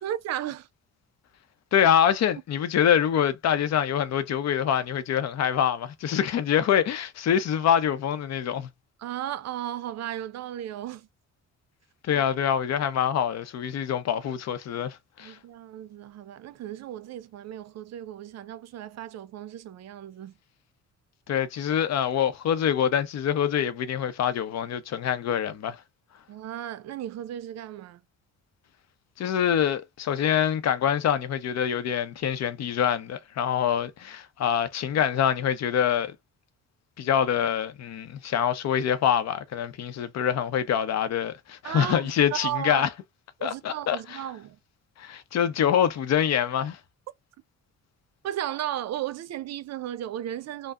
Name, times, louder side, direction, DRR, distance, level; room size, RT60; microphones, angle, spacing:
voice 1, 0.0-0.7 9.0-11.1 12.1-12.2 15.2-20.3 26.3-28.0 41.6-42.9 43.4-44.6 48.2-50.7, right 12 dB, 60° right, 0.5 m, -35 dB
voice 2, 1.7-8.7 12.0-15.4 21.3-25.8 29.2-36.2 37.0-42.9 43.4-44.0 45.0-46.8, left 9 dB, 60° left, 0.6 m, -25 dB
3.4 x 2.0 x 2.3 m
cardioid pair, 90°, 30 cm